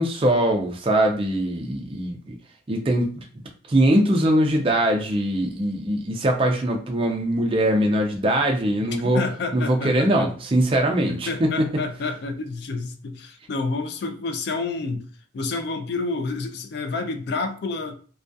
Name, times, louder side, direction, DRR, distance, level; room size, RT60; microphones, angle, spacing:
voice 1, 0.0-2.3 2.7-3.2 3.7-9.2 9.5-11.7, right 1 dB, 25° right, 0.4 m, -22 dB
voice 2, 8.8-10.3 11.1-15.1 15.3-17.9, left 3 dB, 55° left, 0.3 m, -29 dB
2.3 x 2.2 x 2.5 m
head